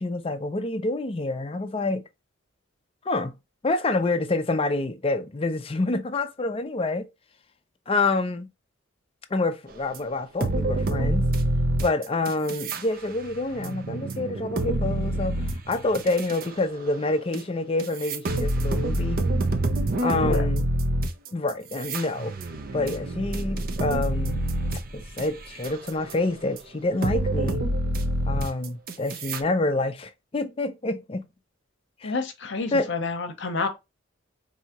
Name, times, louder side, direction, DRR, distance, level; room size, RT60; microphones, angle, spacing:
voice 1, 0.0-2.0 3.0-3.3 3.6-7.1 7.9-8.5 9.3-11.3 11.8-15.4 15.7-19.2 20.0-20.7 21.3-22.3 22.7-24.4 24.9-27.6 28.3-31.2 32.0-32.2 32.7-32.9, left 2 dB, 30° left, 0.4 m, -27 dB
sound 1, 9.9-10.0 10.4-12.8 13.2-16.5 17.3-17.4 17.8-25.2 25.6-26.1 26.6-26.7 27.0-29.4, right 1 dB, 45° right, 0.6 m, -27 dB
voice 2, 32.0-33.7, left 3 dB, 60° left, 0.8 m, -29 dB
4.7 x 2.7 x 2.8 m
head